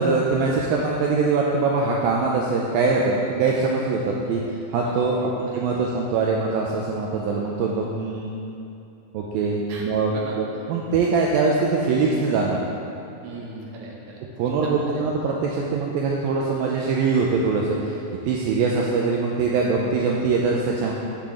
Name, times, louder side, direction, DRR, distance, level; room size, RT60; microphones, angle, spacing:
voice 1, 0.0-4.4 4.7-8.3 9.1-12.6 14.4-18.0 18.3-20.9, right 4 dB, 80° right, -2 dB, 2.3 m, -23 dB
voice 2, 4.9-5.2 9.7-9.8 10.1-10.3 13.2-14.8, right 3 dB, 65° right, -3 dB, 2.3 m, -38 dB
8.8 x 7.6 x 3.7 m, 2.8 s
omnidirectional pair, 4.3 m